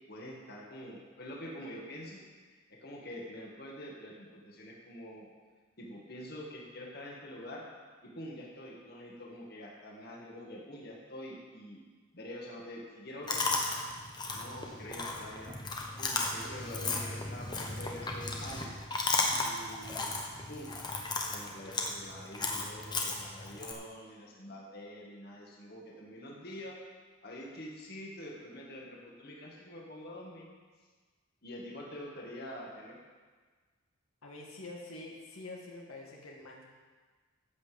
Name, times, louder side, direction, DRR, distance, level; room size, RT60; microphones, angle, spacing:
voice 1, 0.1-5.3 5.8-7.7 8.0-11.8 12.1-14.0 14.3-15.6 16.0-18.7 19.4-20.1 20.5-20.7 21.3-26.8 27.2-30.5 31.4-33.0, left 1 dB, 45° left, -2 dB, 2.1 m, -46 dB
Chewing mastication, 13.3-23.7, left 3 dB, 20° left, 1.0 m, -35 dB
voice 2, 34.2-36.6, left 2 dB, 80° left, -2 dB, 1.8 m, -46 dB
13.5 x 8.2 x 5.3 m, 1.5 s
head